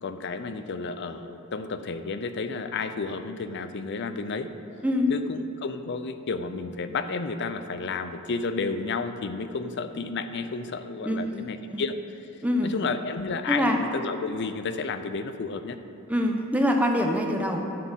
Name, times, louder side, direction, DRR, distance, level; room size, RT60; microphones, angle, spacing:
voice 1, 0.0-4.5 5.1-12.0 12.6-15.8, left 4 dB, 55° left, 10 dB, 0.5 m, -31 dB
voice 2, 11.0-11.8 12.4-12.7 13.5-13.8 16.1-17.6, equal, 5° right, 2 dB, 0.7 m, -25 dB
11.5 x 4.2 x 7.2 m, 2.9 s
head